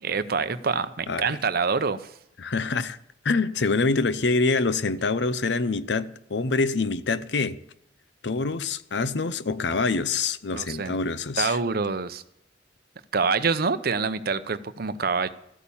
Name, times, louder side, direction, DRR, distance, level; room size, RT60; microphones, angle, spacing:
voice 1, 0.0-2.1 10.5-11.0 11.4-12.2 13.1-15.3, right 5 dB, 55° right, 0.7 m, -26 dB
voice 2, 2.4-3.0 3.2-7.6 8.2-11.6, left 3 dB, 70° left, 0.7 m, -25 dB
14.0 x 8.5 x 7.2 m
head